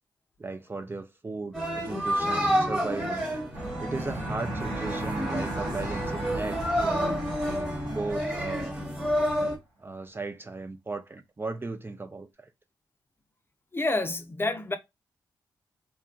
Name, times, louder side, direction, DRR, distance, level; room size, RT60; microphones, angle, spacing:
voice 1, 0.4-3.3 3.8-7.2 7.8-8.8 9.8-12.5, right 3 dB, 25° right, 0.3 m, -36 dB
sound 1, 1.5-9.6, equal, 10° right, 1.1 m, -29 dB
sound 2, 3.5-9.1, right 1 dB, 80° right, 1.1 m, -36 dB
voice 2, 13.7-14.8, left 2 dB, 25° left, 0.5 m, -28 dB
2.8 x 2.4 x 2.3 m
supercardioid pair, 45°, 9 cm